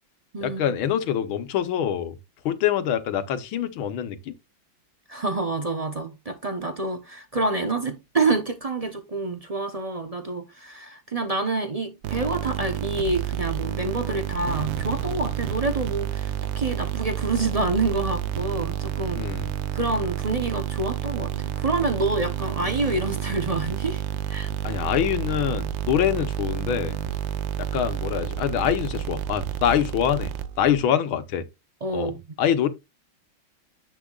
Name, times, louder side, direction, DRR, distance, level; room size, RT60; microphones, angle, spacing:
voice 1, 0.4-2.2 2.5-4.3 19.2-19.5 24.6-27.0 27.6-30.3 30.6-31.5 31.9-32.7, left 9 dB, 85° left, 1.8 m, -25 dB
voice 2, 5.1-19.2 19.7-24.0 24.3-24.5 31.8-32.2, right 3 dB, 50° right, 0.4 m, -27 dB
sound 1, 12.0-30.8, right 11 dB, 75° right, 1.5 m, -30 dB
10.0 x 8.0 x 2.4 m
omnidirectional pair, 2.2 m